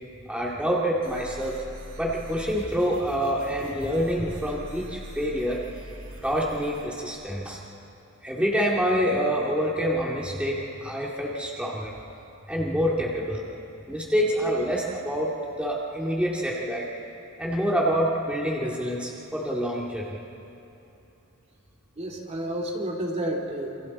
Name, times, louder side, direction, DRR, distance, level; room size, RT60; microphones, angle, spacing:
voice 1, 0.3-1.6 2.0-5.6 6.2-7.6 8.2-12.0 12.5-13.4 13.9-16.9 17.4-20.2, equal, 5° right, -4 dB, 2.2 m, -27 dB
sound 1, 1.0-6.8, equal, 70° right, 6.5 m, -42 dB
voice 2, 22.0-23.9, right 1 dB, 30° right, -1 dB, 2.5 m, -31 dB
27.5 x 27.5 x 4.2 m, 2.9 s
head